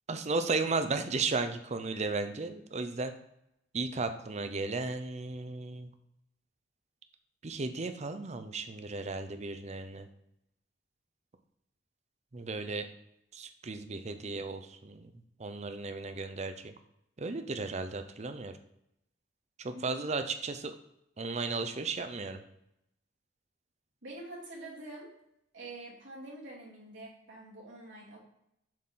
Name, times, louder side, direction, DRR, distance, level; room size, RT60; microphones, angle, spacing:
voice 1, 0.1-3.1 3.7-5.9 7.4-10.1 12.3-12.9 13.3-15.1 15.4-16.7 17.2-18.5 19.6-20.7 21.2-22.4, right 3 dB, 35° right, 9 dB, 0.6 m, -35 dB
voice 2, 19.7-20.1 24.0-25.1 25.5-28.2, right 2 dB, 85° right, -5 dB, 2.5 m, -46 dB
7.4 x 4.3 x 3.7 m, 0.80 s
head